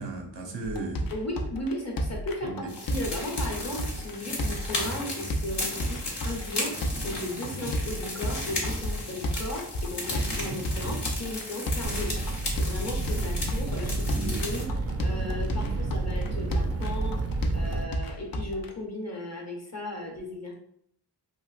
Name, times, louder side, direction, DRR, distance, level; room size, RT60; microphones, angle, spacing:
voice 1, 0.0-1.1 2.4-2.7 7.6-7.7 10.2-10.6 13.7-13.8 14.1-14.3 15.6-15.9 16.8-16.9, right 3 dB, 90° right, 2 dB, 0.7 m, -36 dB
sound 1, 0.8-18.7, equal, 55° left, 0.5 m, -32 dB
voice 2, 1.1-12.1 12.6-14.7 15.0-17.1 17.5-20.5, left 1 dB, 40° left, 0 dB, 0.8 m, -36 dB
sound 2, 2.7-14.6, left 2 dB, 75° left, 0.8 m, -35 dB
sound 3, 11.8-17.8, right 2 dB, 35° right, 0.4 m, -30 dB
3.1 x 2.5 x 2.4 m, 0.67 s
wide cardioid pair, 75°, 42 cm